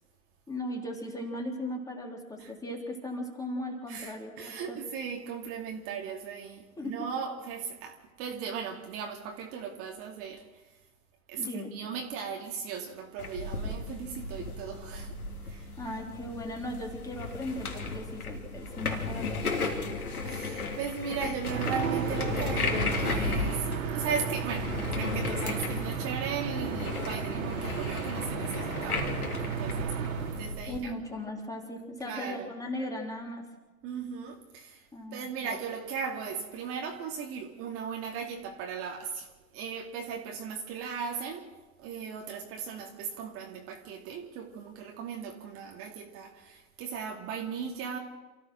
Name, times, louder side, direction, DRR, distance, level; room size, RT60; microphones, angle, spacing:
voice 1, 0.5-4.8 6.8-6.9 11.4-11.7 15.8-19.6 30.7-33.5 34.9-35.6, left 1 dB, 10° left, 1 dB, 3.5 m, -37 dB
voice 2, 3.9-10.6 11.3-15.7 20.0-30.0 30.4-30.9 32.0-32.5 33.8-39.3 39.5-41.5 41.8-48.0, right 6 dB, 30° right, 2 dB, 2.6 m, -37 dB
sound 1, 13.2-30.8, left 3 dB, 80° left, 3.7 m, -35 dB
sound 2, 21.4-30.6, right 6 dB, 65° right, 3.4 m, -34 dB
28.5 x 15.0 x 6.3 m, 1.2 s
figure-of-eight pair, 120°, 44 cm